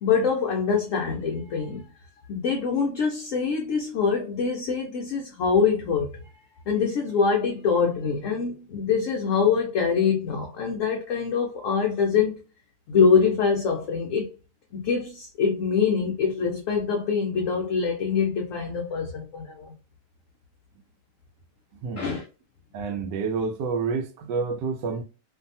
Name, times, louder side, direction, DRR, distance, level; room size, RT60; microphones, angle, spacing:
voice 1, 0.0-1.8 2.3-6.1 6.7-12.4 12.9-14.3 14.7-19.7 22.0-22.2, left 5 dB, 65° left, 0.8 m, -24 dB
voice 2, 22.7-25.0, right 5 dB, 85° right, 1.2 m, -28 dB
2.7 x 2.6 x 2.6 m
omnidirectional pair, 1.8 m